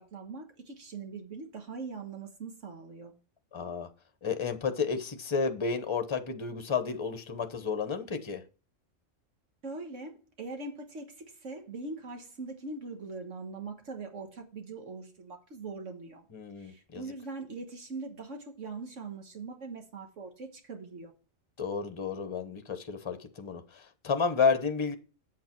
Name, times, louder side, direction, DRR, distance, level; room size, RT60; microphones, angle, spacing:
voice 1, 0.0-3.1 9.6-16.2 16.6-21.1, right 3 dB, 70° right, 1.7 m, -42 dB
voice 2, 3.5-3.9 4.2-8.4 16.3-17.0 21.6-24.9, left 5 dB, 25° left, 0.9 m, -31 dB
8.4 x 7.6 x 4.5 m
omnidirectional pair, 1.3 m